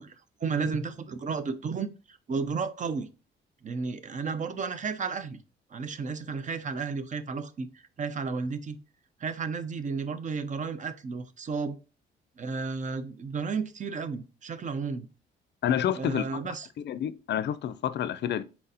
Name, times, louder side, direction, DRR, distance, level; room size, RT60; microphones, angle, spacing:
voice 1, 0.0-3.1 3.6-5.4 5.7-8.8 9.2-11.8 12.4-15.1 16.0-16.7, right 5 dB, 40° right, 0.6 m, -33 dB
voice 2, 15.6-16.3 16.8-18.4, left 10 dB, 60° left, 0.4 m, -28 dB
4.3 x 4.0 x 2.7 m
cardioid pair, 90°, 20 cm